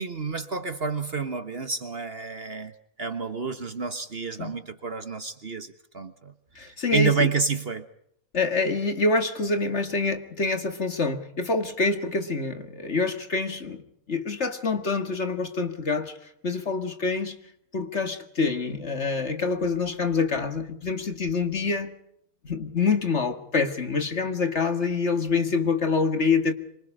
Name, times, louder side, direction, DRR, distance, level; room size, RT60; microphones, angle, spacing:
voice 1, 0.0-2.7 3.0-7.9, right 4 dB, 40° right, 10 dB, 1.4 m, -29 dB
voice 2, 6.6-7.2 8.3-13.8 14.1-16.2 16.4-17.4 17.7-22.0 22.4-26.5, left 4 dB, 45° left, 8 dB, 2.1 m, -26 dB
26.5 x 24.5 x 5.0 m, 0.69 s
omnidirectional pair, 1.6 m